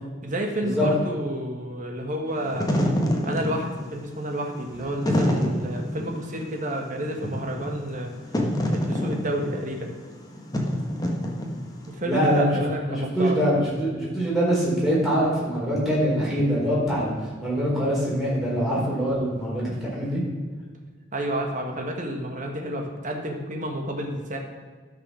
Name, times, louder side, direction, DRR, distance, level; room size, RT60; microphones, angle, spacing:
voice 1, 0.2-2.7 3.2-8.1 8.7-9.9 11.9-13.4 21.1-24.4, right 1 dB, 40° right, 2 dB, 1.6 m, -30 dB
Wind / Fire, 2.4-11.9, equal, 20° left, 1.4 m, -27 dB
voice 2, 12.0-12.5 12.8-17.1 17.4-20.2, equal, ahead, -8 dB, 4.0 m, -23 dB
12.5 x 5.9 x 6.3 m, 1.5 s
head